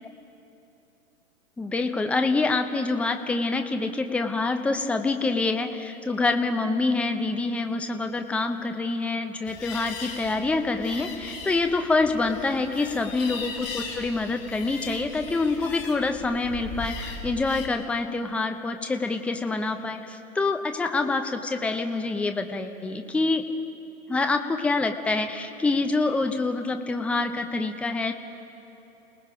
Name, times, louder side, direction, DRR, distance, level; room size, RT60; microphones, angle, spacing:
voice 1, 1.6-23.4 24.1-28.1, left 3 dB, 5° left, 6 dB, 0.7 m, -26 dB
sound 1, 9.5-17.7, left 4 dB, 35° left, 4.8 m, -38 dB
29.0 x 19.0 x 5.0 m, 2.9 s
hypercardioid pair, 120°, 42 cm